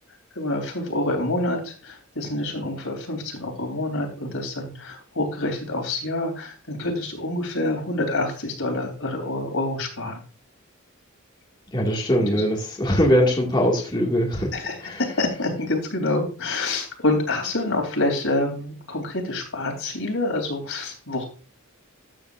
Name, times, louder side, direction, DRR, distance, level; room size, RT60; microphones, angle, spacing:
voice 1, 0.3-10.2 12.3-12.4 14.5-21.2, left 2 dB, 70° left, 2 dB, 3.4 m, -27 dB
voice 2, 11.7-14.5 14.8-15.0, equal, 20° left, -2 dB, 2.1 m, -21 dB
13.0 x 8.6 x 2.6 m, 0.37 s
head